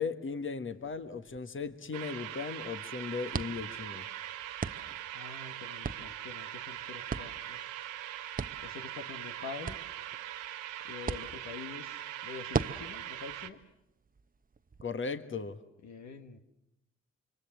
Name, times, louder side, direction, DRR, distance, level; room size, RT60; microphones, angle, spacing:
voice 1, 0.0-4.0 14.8-15.6, left 5 dB, 40° left, 10 dB, 1.7 m, -37 dB
sound 1, 0.7-14.8, right 5 dB, 30° right, 0.9 m, -42 dB
sound 2, 1.9-13.5, right 12 dB, 85° right, 1.1 m, -41 dB
voice 2, 5.1-7.8 8.6-9.8 10.9-13.6 15.8-16.4, left 5 dB, 65° left, 6 dB, 1.6 m, -46 dB
26.0 x 23.5 x 7.6 m, 0.83 s
hypercardioid pair, 40°, 30 cm